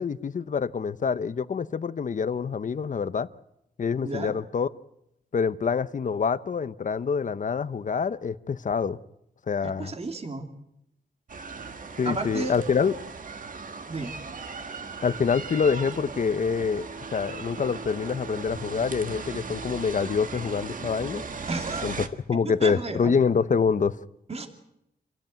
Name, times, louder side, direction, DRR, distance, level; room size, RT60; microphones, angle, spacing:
voice 1, 0.0-3.3 3.8-4.7 5.3-9.0 9.5-9.9 12.0-12.9 15.0-21.2 21.8-24.0, left 6 dB, 50° left, 0.8 m, -26 dB
voice 2, 9.6-10.5 12.0-12.6 13.9-14.1 21.5-21.9 22.3-23.1 24.3-24.5, right 3 dB, 35° right, 2.6 m, -32 dB
sound 1, 11.3-22.1, right 4 dB, 50° right, 1.6 m, -38 dB
27.0 x 16.5 x 9.2 m
wide cardioid pair, 140°, 17 cm